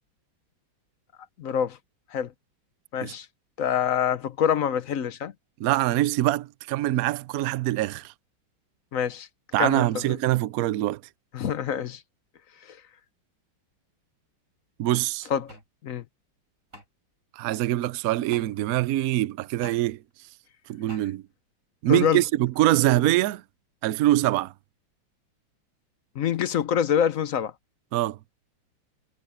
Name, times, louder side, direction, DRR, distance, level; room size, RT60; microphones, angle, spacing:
voice 1, 1.4-1.8 2.1-2.3 2.9-3.3 3.6-5.3 8.9-9.3 9.6-10.2 11.3-12.0 12.7-12.8 15.3-15.5 15.8-16.0 21.9-22.2 26.2-27.5, left 8 dB, 55° left, 0.9 m, -26 dB
voice 2, 5.6-8.1 9.5-11.0 14.8-15.3 17.4-20.0 20.7-21.2 21.8-23.4 23.8-24.5 27.9-28.2, right 15 dB, 90° right, 0.7 m, -24 dB
sound 1, 15.5-15.7 16.7-16.9 18.3-18.5 19.6-19.8 20.9-21.0, equal, 40° right, 5.3 m, -44 dB
omnidirectional pair, 2.3 m